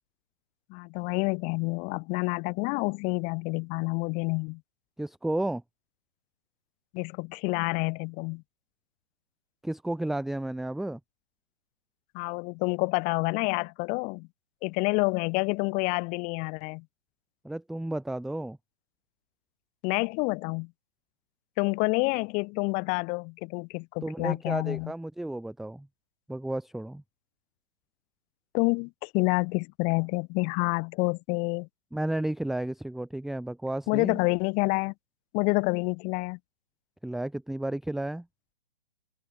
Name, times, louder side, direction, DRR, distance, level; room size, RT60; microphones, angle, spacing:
voice 1, 0.7-4.6 6.9-8.4 12.1-14.3 14.6-16.8 19.8-20.7 21.6-24.9 28.5-31.7 33.9-34.9 35.3-36.4, left 30 dB, 25° left, 2.4 m, -28 dB
voice 2, 5.0-5.6 9.6-11.0 17.4-18.6 24.0-25.9 26.3-27.0 31.9-34.2 37.0-38.3, right 1 dB, ahead, 0.8 m, -32 dB
hypercardioid pair, 140°, 30 cm